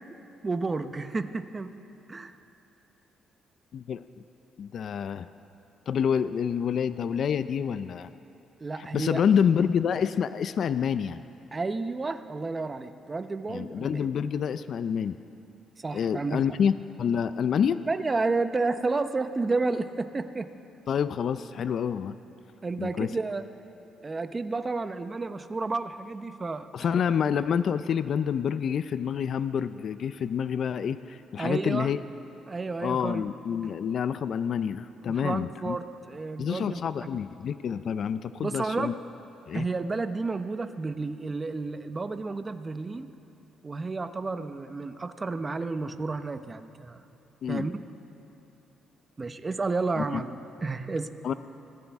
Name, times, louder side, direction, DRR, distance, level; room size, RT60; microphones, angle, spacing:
voice 1, 0.4-1.7 2.1-2.3 8.6-9.2 11.5-14.1 15.8-16.4 17.9-20.5 22.6-23.4 24.0-27.0 31.4-31.9 32.5-33.3 35.1-37.2 38.4-38.9 39.5-43.1 43.6-47.0 47.5-47.7 49.2-51.1, right 3 dB, 25° right, 9 dB, 0.8 m, -31 dB
voice 2, 3.7-4.0 4.6-5.3 5.9-8.1 8.9-11.2 13.5-15.1 15.9-17.8 20.9-22.2 22.8-23.1 26.7-32.0 32.8-35.8 36.4-38.9 39.5-39.7 47.4-47.7 50.0-50.2 51.2-51.3, left 7 dB, 60° left, 13 dB, 0.4 m, -27 dB
25.0 x 15.0 x 3.6 m, 2.8 s
cardioid pair, 90°, 0 cm